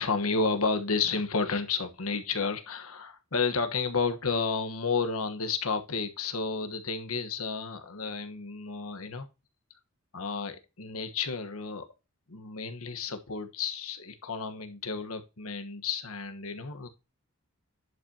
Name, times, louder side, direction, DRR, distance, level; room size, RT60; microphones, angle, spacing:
voice 1, 0.0-9.3 10.1-11.9 12.3-16.9, left 4 dB, 85° left, 7 dB, 1.2 m, -31 dB
11.0 x 5.6 x 2.8 m, 0.27 s
head